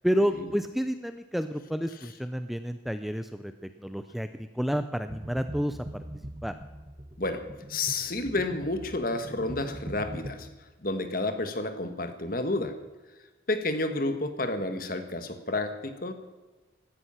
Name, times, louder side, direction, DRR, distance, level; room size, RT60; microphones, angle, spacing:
voice 1, 0.0-3.5 3.8-5.8 6.4-6.5, equal, ahead, 9 dB, 0.5 m, -30 dB
sound 1, 5.1-10.3, right 1 dB, 25° right, 1.4 m, -42 dB
voice 2, 7.2-10.5 10.8-12.7 13.5-16.1, left 2 dB, 45° left, 8 dB, 1.5 m, -30 dB
16.5 x 12.5 x 5.7 m, 1.2 s
head